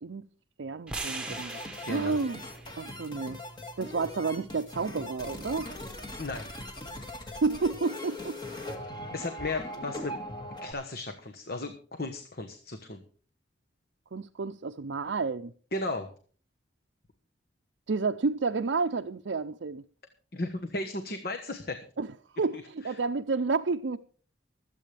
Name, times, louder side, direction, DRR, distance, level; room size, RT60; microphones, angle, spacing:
voice 1, 0.6-1.6 1.9-2.4 2.8-3.4 3.8-5.7 7.4-8.4 14.1-15.5 17.9-19.8 22.0-24.0, right 4 dB, 75° right, 0.5 m, -30 dB
sound 1, 0.9-5.1, right 3 dB, 5° right, 1.5 m, -42 dB
sound 2, 1.3-10.7, left 1 dB, 25° left, 2.0 m, -40 dB
voice 2, 1.8-2.2 6.2-6.7 8.6-8.7 9.1-10.1 10.6-13.0 15.7-16.1 20.3-21.8 22.5-22.9, left 2 dB, 50° left, 1.2 m, -35 dB
24.5 x 8.4 x 3.4 m
head